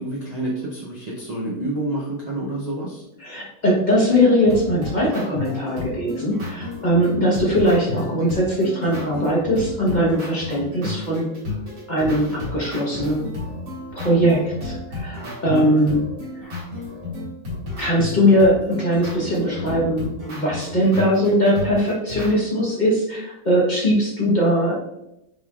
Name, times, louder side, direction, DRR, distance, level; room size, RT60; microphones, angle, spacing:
voice 1, 0.0-3.0 15.2-15.6, right 1 dB, 70° right, -5 dB, 0.4 m, -28 dB
voice 2, 3.2-11.3 11.9-13.3 13.9-16.0 17.8-24.8, equal, 30° left, -5 dB, 1.0 m, -20 dB
sound 1, 4.5-22.3, left 2 dB, 55° right, 1.7 m, -32 dB
5.3 x 3.3 x 2.4 m, 0.85 s
omnidirectional pair, 1.9 m